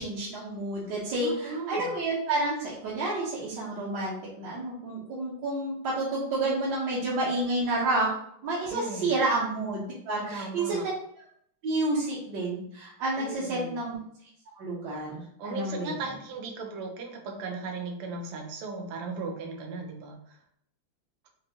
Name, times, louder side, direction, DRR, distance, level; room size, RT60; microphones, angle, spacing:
voice 1, 0.0-8.1 8.4-10.8 11.6-13.9 14.6-16.0, right 2 dB, 60° right, -8 dB, 1.4 m, -30 dB
voice 2, 1.2-1.9 8.7-9.1 10.1-10.9 13.2-13.8 15.4-20.2, right 3 dB, 85° right, 2 dB, 1.7 m, -36 dB
5.0 x 2.8 x 2.6 m, 0.69 s
omnidirectional pair, 2.4 m